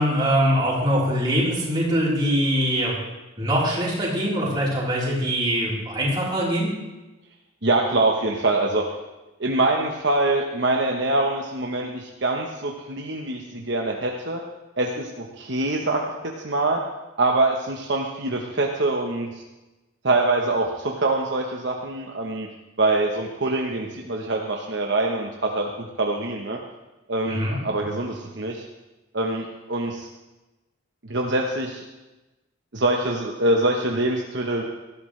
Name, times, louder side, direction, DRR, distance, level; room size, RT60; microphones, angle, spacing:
voice 1, 0.0-3.0 3.4-6.7 27.3-27.6, equal, 20° right, -6 dB, 4.1 m, -23 dB
voice 2, 7.6-8.9 9.4-14.4 14.8-16.1 16.4-16.8 17.2-19.3 20.0-22.5 22.8-26.6 27.1-28.6 29.1-30.1 31.1-31.8 32.7-34.6, right 2 dB, 60° right, 1 dB, 1.1 m, -24 dB
18.0 x 13.5 x 3.3 m, 1.1 s
head